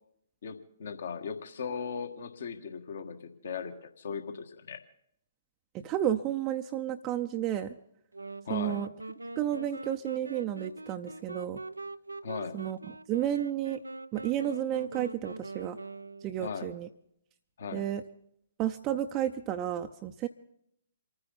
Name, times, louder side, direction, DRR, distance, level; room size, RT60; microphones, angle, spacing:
voice 1, 0.4-4.8 8.4-8.8 12.2-12.6 16.4-16.7 17.6-17.8, left 6 dB, 55° left, 7 dB, 1.5 m, -38 dB
voice 2, 5.7-7.8 8.5-8.9 9.4-11.6 12.5-12.8 13.1-13.8 14.1-15.8 16.2-16.9 17.7-18.0 18.6-20.3, right 11 dB, 25° right, 5 dB, 0.6 m, -31 dB
sound 1, 8.1-16.6, right 2 dB, 80° right, 0.5 m, -43 dB
28.5 x 9.8 x 4.1 m, 0.72 s
figure-of-eight pair, 125°, 0 cm